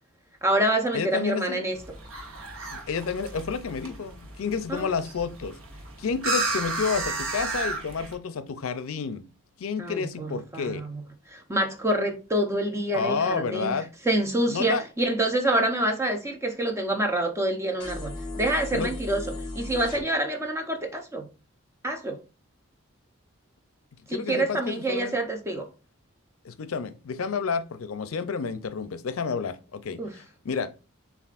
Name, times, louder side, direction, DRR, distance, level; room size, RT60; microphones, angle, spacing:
voice 1, 0.4-1.8 4.7-4.9 9.8-11.0 11.3-13.7 14.0-19.2 19.5-21.3 21.8-22.2 24.1-25.7 30.0-30.1, right 1 dB, 15° right, 0.6 m, -27 dB
voice 2, 0.9-1.6 2.7-5.6 6.0-9.2 9.6-10.8 12.9-13.9 14.5-14.8 18.7-18.9 24.1-25.2 26.4-30.7, left 5 dB, 75° left, 0.5 m, -30 dB
sound 1, 1.7-8.1, right 2 dB, 70° right, 0.9 m, -33 dB
sound 2, 17.8-20.0, left 2 dB, 20° left, 0.8 m, -36 dB
6.9 x 2.4 x 2.4 m
head